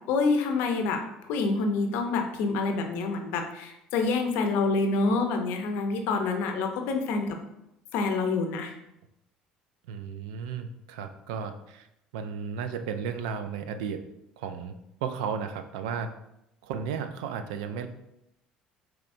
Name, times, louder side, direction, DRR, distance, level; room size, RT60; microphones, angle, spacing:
voice 1, 0.1-7.4 7.9-8.7, left 3 dB, 70° left, 5 dB, 0.6 m, -27 dB
voice 2, 9.9-11.9 12.1-14.0 14.4-14.7 15.0-16.1 16.6-17.9, right 6 dB, 75° right, 9 dB, 0.4 m, -34 dB
4.8 x 3.0 x 2.6 m, 0.83 s
hypercardioid pair, 65°, 4 cm